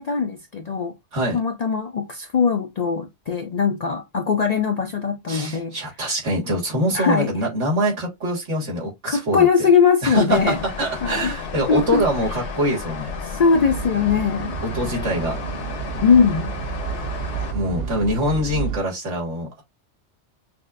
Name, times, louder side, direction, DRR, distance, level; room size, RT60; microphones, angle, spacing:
voice 1, 0.0-0.9 1.3-5.8 6.9-7.4 9.1-10.6 11.0-11.3 11.7-12.0 13.2-14.6 16.0-16.6, left 6 dB, 60° left, 0.4 m, -20 dB
voice 2, 5.3-9.5 10.0-13.1 14.6-15.4 17.5-19.6, equal, 90° right, 2.0 m, -24 dB
sound 1, 10.3-17.5, left 5 dB, 80° left, 1.0 m, -33 dB
sound 2, 13.5-18.8, right 6 dB, 65° right, 0.8 m, -30 dB
6.0 x 2.1 x 2.5 m
omnidirectional pair, 1.2 m